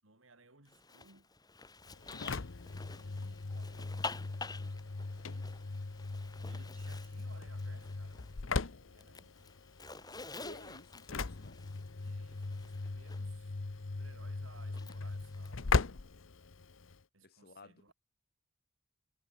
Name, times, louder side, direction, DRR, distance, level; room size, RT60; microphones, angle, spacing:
voice 1, 0.0-1.3 2.9-4.3 4.6-5.6 6.4-9.4 12.0-15.8 17.1-17.9, right 3 dB, 85° right, 4.9 m, -62 dB
Zipper (clothing), 0.7-8.5 8.8-13.2 14.7-15.5, left 3 dB, 20° left, 2.9 m, -49 dB
Engine / Slam, 1.9-17.0, left 3 dB, 80° left, 0.9 m, -39 dB
voice 2, 10.4-11.6 17.2-17.9, left 2 dB, 50° left, 1.9 m, -54 dB
head